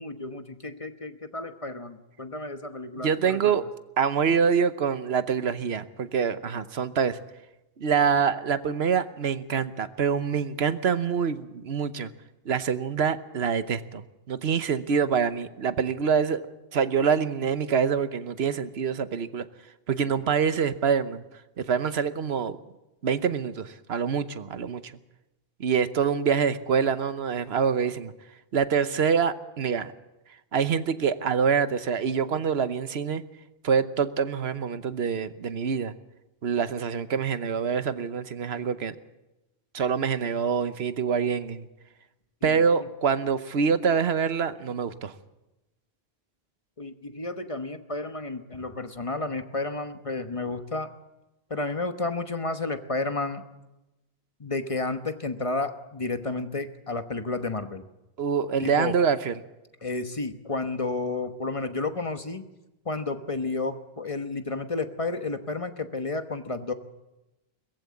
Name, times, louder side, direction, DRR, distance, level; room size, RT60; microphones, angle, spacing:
voice 1, 0.0-3.6 42.4-42.6 46.8-50.9 51.5-53.4 54.4-57.8 58.6-59.0 59.8-62.4 62.8-66.7, left 3 dB, 35° left, 8 dB, 1.2 m, -31 dB
voice 2, 3.0-3.7 4.0-7.2 7.8-12.1 12.4-19.5 19.9-21.2 21.6-22.6 23.0-24.9 25.6-28.1 28.5-29.9 30.5-33.2 33.6-35.9 36.4-39.0 39.7-41.7 42.4-45.1 58.2-59.3, right 6 dB, 90° right, 12 dB, 1.2 m, -25 dB
21.0 x 15.0 x 8.5 m, 0.98 s
omnidirectional pair, 1.0 m